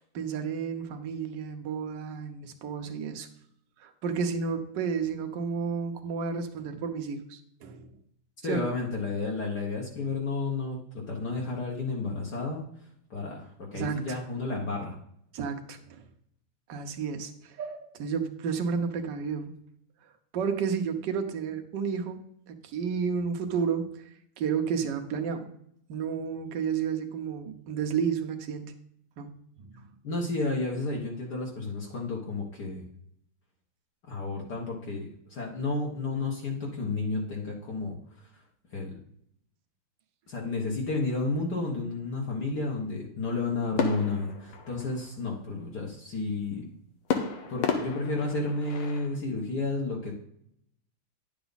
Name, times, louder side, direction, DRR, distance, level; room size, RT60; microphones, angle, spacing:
voice 1, 0.1-3.3 3.8-7.9 8.4-8.7 13.7-14.2 15.3-16.0 16.7-19.5 20.3-24.0 24.4-25.5 25.9-28.7 29.2-29.3 29.6-29.9, right 6 dB, 60° right, 6 dB, 1.4 m, -31 dB
voice 2, 8.4-12.6 13.1-15.0 30.0-32.8 34.1-38.0 38.7-38.9 40.3-46.7 47.5-50.1, left 3 dB, 55° left, -2 dB, 1.7 m, -31 dB
sound 1, 43.8-45.3 47.1-49.2, left 6 dB, 90° left, 2.0 m, -32 dB
10.5 x 7.0 x 4.0 m, 0.71 s
omnidirectional pair, 2.3 m